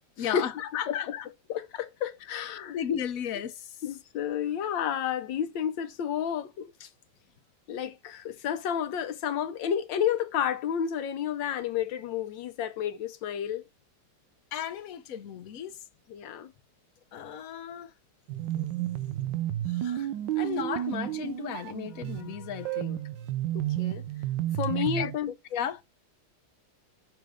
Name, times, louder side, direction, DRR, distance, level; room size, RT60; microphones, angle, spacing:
voice 1, 0.2-1.3 2.4-2.5 2.7-3.8 14.5-15.8 17.1-17.9 19.7-20.1 20.4-23.0 25.0-25.1 25.5-25.8, left 9 dB, 60° left, 1.0 m, -34 dB
voice 2, 1.5-2.8 3.8-6.9 7.7-13.6 16.1-16.5 23.5-24.0 24.6-25.3, left 9 dB, 75° left, 1.4 m, -31 dB
sound 1, 18.3-25.1, right 13 dB, 75° right, 1.3 m, -31 dB
6.2 x 3.9 x 4.9 m
omnidirectional pair, 2.1 m